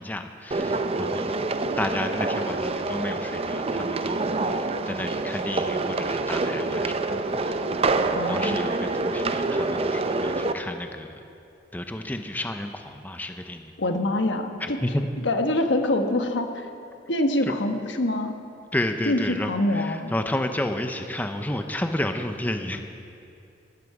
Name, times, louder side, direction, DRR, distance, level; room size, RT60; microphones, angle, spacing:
voice 1, 0.0-7.1 7.4-7.6 8.1-11.1 11.7-13.7 14.6-15.1 17.4-17.5 18.7-22.8, left 1 dB, 10° left, 6 dB, 0.6 m, -31 dB
sound 1, 0.5-10.5, right 3 dB, 35° right, 0.6 m, -26 dB
voice 2, 8.1-8.6 13.8-14.8 15.2-16.7 17.1-18.3 19.1-20.1, left 1 dB, 85° left, 6 dB, 1.2 m, -25 dB
19.5 x 12.0 x 4.8 m, 2.6 s
head